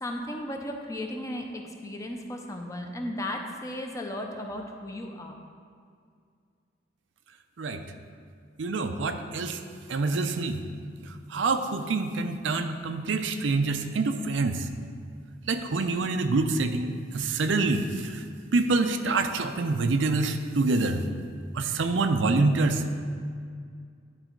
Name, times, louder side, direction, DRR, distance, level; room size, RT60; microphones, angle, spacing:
voice 1, 0.0-5.4, left 1 dB, 15° left, 2 dB, 0.6 m, -35 dB
voice 2, 8.6-9.6 9.9-10.6 11.3-14.6 15.5-17.9 18.5-21.0 21.5-22.8, right 3 dB, 85° right, 7 dB, 0.5 m, -26 dB
10.5 x 3.9 x 4.5 m, 2.2 s
head